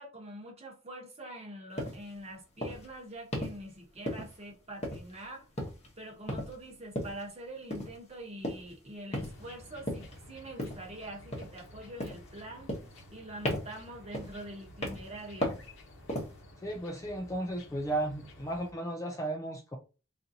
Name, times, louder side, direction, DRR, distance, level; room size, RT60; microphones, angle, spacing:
voice 1, 0.0-5.5 6.0-12.7 13.1-15.6, right 1 dB, 30° right, 1.0 m, -45 dB
sound 1, 1.8-2.0 2.6-2.9 3.3-3.6 4.1-4.5 4.8-5.2 5.6-5.9 6.3-6.6 6.9-7.2 7.7-8.0 8.4-8.7 9.1-9.5 9.9-10.2 10.6-10.9 11.3-11.7 12.0-12.3 12.7-13.2 13.4-13.8 14.1-14.4 14.8-15.1 15.4-15.7 16.1-16.4, equal, 30° left, 0.9 m, -36 dB
sound 2, 9.2-18.7, left 1 dB, 60° left, 0.9 m, -53 dB
voice 2, 16.6-19.8, right 1 dB, 15° left, 0.3 m, -34 dB
3.7 x 2.6 x 2.7 m
head